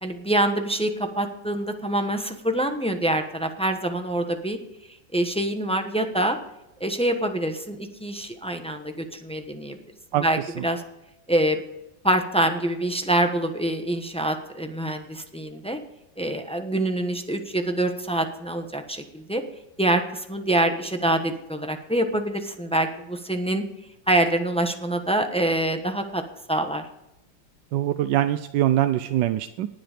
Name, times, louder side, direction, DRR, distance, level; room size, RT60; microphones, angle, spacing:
voice 1, 0.0-4.6 5.1-6.4 6.8-9.8 10.2-10.8 11.3-11.6 12.0-15.8 16.2-19.4 19.8-23.6 24.1-26.2 26.5-26.9, right 1 dB, 5° left, 5 dB, 0.6 m, -25 dB
voice 2, 27.7-29.7, right 13 dB, 75° right, 10 dB, 1.2 m, -23 dB
19.0 x 7.9 x 5.0 m, 0.89 s
omnidirectional pair, 2.1 m